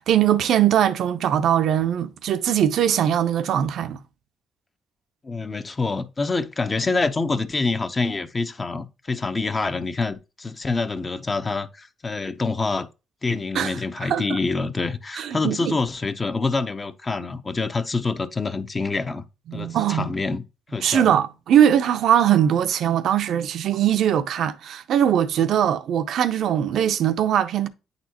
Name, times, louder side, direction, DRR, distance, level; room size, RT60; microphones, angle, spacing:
voice 1, 0.0-4.0 13.5-14.4 15.1-15.7 19.5-20.1 20.8-27.7, right 10 dB, 75° right, 0.6 m, -21 dB
voice 2, 5.2-12.9 13.2-19.2 19.5-20.4 20.7-21.1, left 3 dB, 30° left, 0.8 m, -26 dB
9.2 x 4.1 x 2.9 m
cardioid pair, 90°, 0 cm